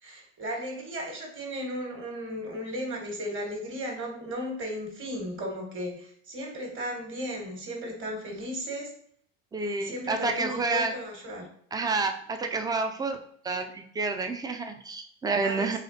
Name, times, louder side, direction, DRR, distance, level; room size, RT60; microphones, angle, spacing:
voice 1, 0.0-8.9 9.6-11.5 15.4-15.8, equal, 35° right, 1 dB, 1.5 m, -35 dB
voice 2, 9.5-10.9 11.7-13.2 13.4-15.8, right 3 dB, 10° right, 6 dB, 0.4 m, -29 dB
4.1 x 3.3 x 2.7 m, 0.64 s
supercardioid pair, 105°, 33 cm